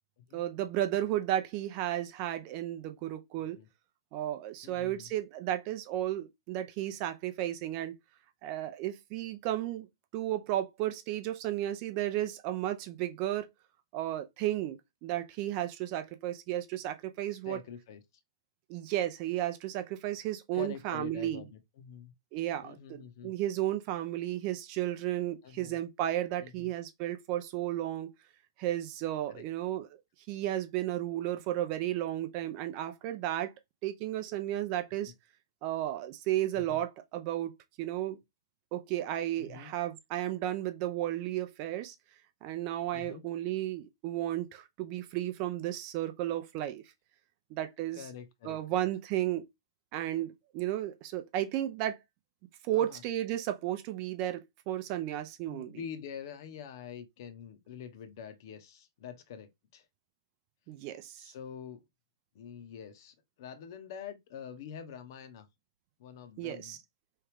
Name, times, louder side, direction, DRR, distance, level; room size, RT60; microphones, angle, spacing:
voice 1, 0.3-3.6 4.1-7.9 8.4-9.9 10.1-13.5 13.9-17.6 18.7-21.4 22.3-28.1 28.6-30.0 30.3-33.5 33.8-35.1 35.6-37.5 37.8-38.2 38.7-41.9 42.4-46.8 47.5-48.0 48.4-49.5 49.9-52.0 52.6-55.8 60.7-61.3 66.4-66.8, right 13 dB, 40° right, 0.5 m, -33 dB
voice 2, 4.6-5.1 17.5-18.0 20.5-22.1 22.6-23.3 25.4-25.8 26.4-26.7 29.3-29.4 36.5-36.8 39.4-39.7 42.9-43.3 47.9-48.9 52.7-53.0 55.5-59.8 61.2-61.8 62.3-65.5 66.0-66.8, left 8 dB, 50° left, 0.7 m, -46 dB
3.3 x 2.3 x 3.3 m
hypercardioid pair, 120°, 2 cm